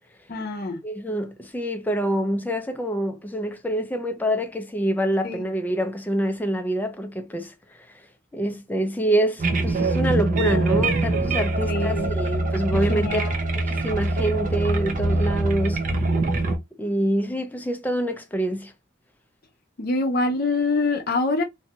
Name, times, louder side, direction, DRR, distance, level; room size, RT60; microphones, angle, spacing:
voice 1, 0.3-0.8 5.2-5.4 11.7-12.1 12.9-13.3 19.8-21.4, left 3 dB, 50° left, 0.6 m, -25 dB
voice 2, 0.8-8.0 8.3-13.3 13.6-15.8 16.8-18.7, right 1 dB, 10° left, 0.4 m, -26 dB
sound 1, 9.4-16.6, right 2 dB, 40° right, 0.6 m, -23 dB
2.6 x 2.2 x 2.9 m
head